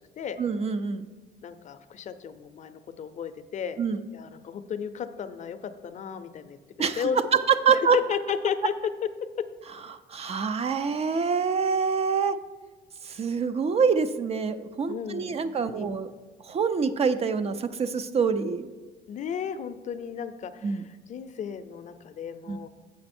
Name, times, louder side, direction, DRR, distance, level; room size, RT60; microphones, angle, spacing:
voice 1, 0.4-1.1 3.8-4.0 6.8-8.0 10.1-12.4 13.0-16.1 16.4-18.7 20.6-20.8 22.5-22.6, right 6 dB, 35° right, 11 dB, 0.4 m, -25 dB
voice 2, 1.4-3.8 4.1-7.2 7.7-8.7 9.4-9.5 14.9-15.4 15.6-15.9 19.1-22.7, left 7 dB, 45° left, 10 dB, 0.5 m, -34 dB
7.8 x 6.0 x 4.3 m, 1.3 s
cardioid pair, 110°, 17 cm